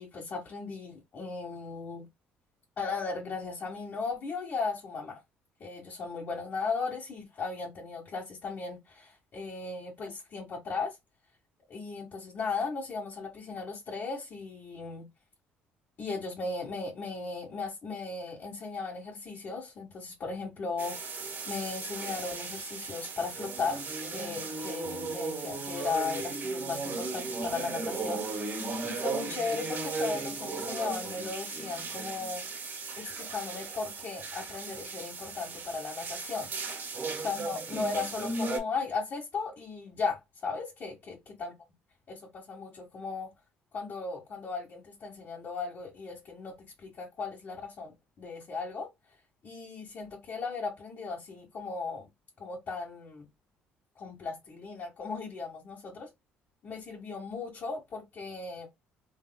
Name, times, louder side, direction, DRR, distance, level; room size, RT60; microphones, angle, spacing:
voice 1, 0.0-2.1 2.8-5.2 5.6-11.0 11.7-15.1 16.0-21.1 21.5-23.8 24.1-32.4 33.0-36.5 37.2-41.5 42.1-43.3 43.7-48.9 49.4-52.1 52.4-53.3 54.0-56.1 56.6-58.7, left 4 dB, 55° left, 1.5 m, -36 dB
sound 1, 20.8-38.6, right 4 dB, 50° right, 1.6 m, -36 dB
3.4 x 3.1 x 2.2 m
supercardioid pair, 70°, 5 cm